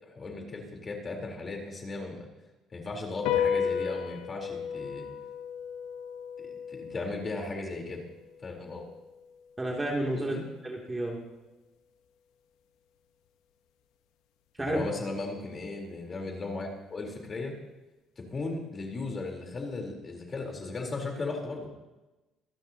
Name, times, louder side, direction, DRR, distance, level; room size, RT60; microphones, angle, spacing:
voice 1, 0.0-2.3 2.7-5.1 6.4-8.1 8.4-8.9 10.2-10.4 14.6-17.6 18.2-21.7, left 3 dB, 30° left, 0 dB, 3.8 m, -36 dB
sound 1, 3.3-10.0, left 7 dB, 90° left, 1.1 m, -34 dB
voice 2, 9.6-11.2 14.6-14.8, right 1 dB, 15° right, -1 dB, 2.8 m, -31 dB
25.5 x 12.0 x 2.9 m, 1.1 s
cardioid pair, 95°, 0 cm